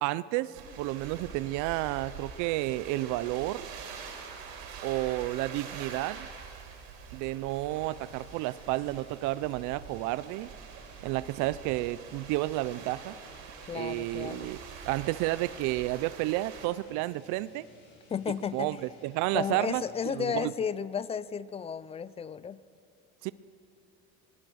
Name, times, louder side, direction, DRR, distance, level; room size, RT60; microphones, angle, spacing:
voice 1, 0.0-3.7 4.8-6.3 7.1-10.5 11.0-13.1 13.7-14.6 14.9-17.7 18.5-18.8 19.0-19.8 20.1-20.5 23.2-23.3, right 17 dB, 65° right, 17 dB, 0.6 m, -31 dB
sound 1, 0.5-16.7, right 6 dB, 90° right, 5.2 m, -45 dB
sound 2, 7.5-20.6, left 3 dB, 40° left, 5.5 m, -59 dB
voice 2, 13.7-14.5 18.1-18.9 19.3-22.6, left 7 dB, 20° left, 18 dB, 0.4 m, -33 dB
25.0 x 21.0 x 6.4 m, 2.6 s
cardioid pair, 145°, 31 cm